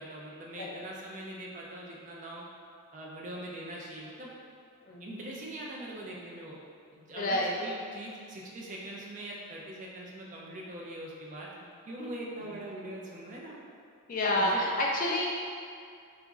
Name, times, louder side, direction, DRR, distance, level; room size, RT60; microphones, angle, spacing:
voice 1, 0.0-2.4 2.9-4.3 5.0-6.6 6.9-13.5 14.4-14.6, right 1 dB, 35° right, -3 dB, 0.4 m, -42 dB
voice 2, 7.1-7.5 12.4-12.5 14.1-15.3, left 1 dB, 40° left, -2 dB, 0.3 m, -28 dB
2.9 x 2.4 x 3.6 m, 2.3 s
head